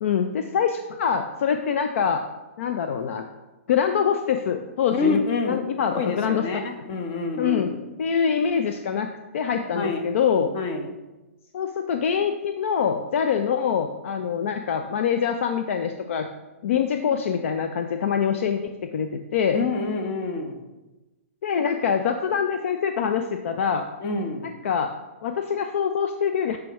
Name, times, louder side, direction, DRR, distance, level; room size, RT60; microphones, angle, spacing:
voice 1, 0.0-2.2 2.6-3.3 3.7-6.6 7.4-7.7 8.0-9.1 9.3-10.5 11.5-16.3 16.6-19.6 21.4-23.9 24.4-24.9 25.2-26.6, left 7 dB, 60° left, 6 dB, 0.5 m, -24 dB
voice 2, 4.9-5.6 5.9-7.8 9.7-10.0 10.5-10.9 19.5-20.6 24.0-24.5, left 3 dB, 40° left, 4 dB, 1.0 m, -27 dB
7.6 x 4.8 x 3.1 m, 1.1 s
hypercardioid pair, 135°, 8 cm